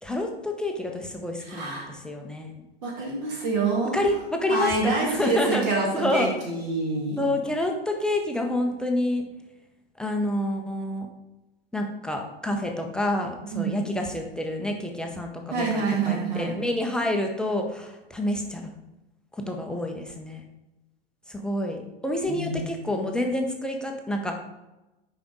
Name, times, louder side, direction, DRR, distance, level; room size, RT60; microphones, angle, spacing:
voice 1, 0.0-2.6 3.9-5.7 5.9-6.3 7.2-9.2 10.0-11.1 11.7-18.8 19.5-20.5 21.3-24.3, left 1 dB, 5° left, 2 dB, 0.6 m, -28 dB
voice 2, 1.4-1.9 2.8-4.0 4.5-7.3 13.5-13.7 15.5-16.6 22.3-22.7, right 3 dB, 45° right, -2 dB, 1.9 m, -27 dB
6.8 x 5.1 x 3.8 m, 1.0 s
figure-of-eight pair, 95°, 31 cm